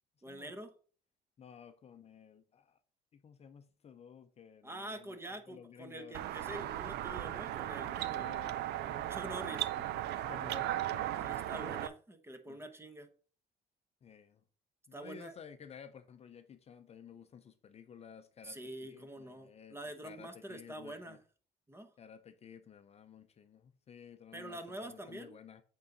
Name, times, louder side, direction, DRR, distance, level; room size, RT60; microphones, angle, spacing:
voice 1, 0.2-0.7 4.6-8.3 9.1-9.7 11.2-13.1 14.9-15.4 18.4-21.2 21.7-21.9 24.3-25.3, right 1 dB, 15° right, 1.0 m, -46 dB
voice 2, 1.4-2.8 3.1-5.2 5.5-6.2 8.1-9.8 10.3-11.8 12.5-12.6 14.0-14.4 14.9-19.8 20.0-21.2 22.0-25.6, left 7 dB, 40° left, 0.6 m, -54 dB
sound 1, 6.1-11.9, right 13 dB, 75° right, 0.5 m, -37 dB
8.4 x 3.9 x 4.0 m
cardioid pair, 110°, 17 cm